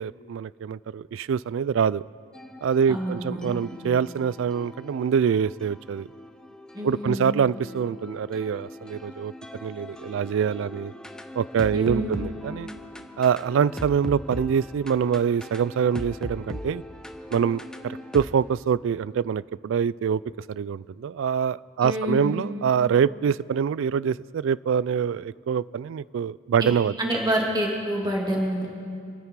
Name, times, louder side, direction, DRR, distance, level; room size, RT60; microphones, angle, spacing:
voice 1, 0.0-2.0 2.6-6.1 6.8-9.3 9.6-10.9 11.4-12.7 13.2-16.8 17.3-20.2 20.5-26.9, right 7 dB, 65° right, 21 dB, 0.3 m, -25 dB
sound 1, 2.3-18.2, left 1 dB, 5° left, 0.7 m, -40 dB
voice 2, 2.9-3.5 6.7-7.3 11.7-12.2 21.8-22.4 26.6-26.7 27.0-28.7, equal, 20° right, -2 dB, 2.5 m, -27 dB
28.0 x 9.6 x 4.7 m, 2.4 s
head